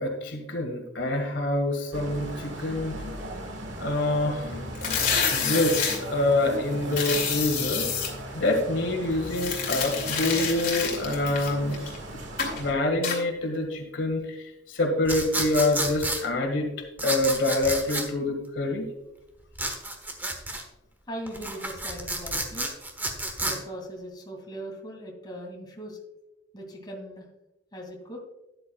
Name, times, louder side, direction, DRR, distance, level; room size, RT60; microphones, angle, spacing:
voice 1, 0.0-3.0 3.8-4.6 5.3-11.8 12.6-16.7 17.0-18.9, left 2 dB, 75° left, 3 dB, 1.8 m, -26 dB
sound 1, 1.9-12.7, equal, 75° right, 1.6 m, -37 dB
sound 2, 4.7-6.0 6.9-8.1 9.3-12.0 12.4-12.6 13.0-13.2, left 6 dB, 45° left, 2.4 m, -28 dB
sound 3, 15.1-16.2 17.0-18.1 19.6-20.6 21.3-23.6, right 1 dB, 10° right, 1.2 m, -30 dB
voice 2, 21.1-22.7 23.4-26.0 26.5-27.3 27.7-28.2, equal, 20° left, -1 dB, 2.3 m, -39 dB
12.5 x 10.0 x 2.3 m, 0.94 s
head